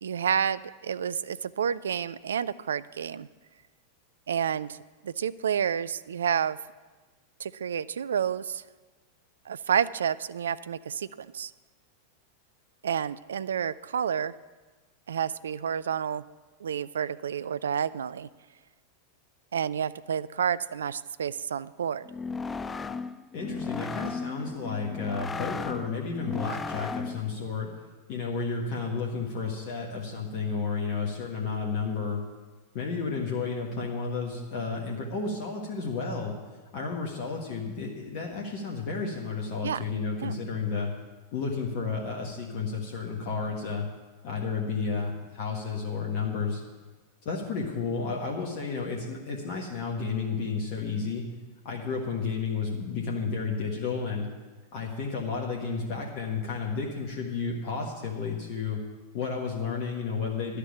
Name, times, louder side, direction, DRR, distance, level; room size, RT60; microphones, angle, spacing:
voice 1, 0.0-3.3 4.3-4.8 5.0-6.6 7.4-8.6 9.5-11.5 12.8-14.3 15.1-16.2 16.6-18.3 19.5-22.1 39.6-39.8 40.2-40.3, right 8 dB, 65° right, 16 dB, 0.3 m, -29 dB
sound 1, 22.0-27.3, left 4 dB, 15° left, 0.4 m, -35 dB
voice 2, 23.3-27.7 28.1-32.2 32.7-36.3 36.7-40.9 41.3-43.9 44.2-46.6 47.2-51.3 51.6-54.3 54.7-58.8 59.1-60.6, left 4 dB, 45° left, -1 dB, 1.5 m, -32 dB
11.5 x 6.7 x 8.8 m, 1.3 s
figure-of-eight pair, 90°, 0 cm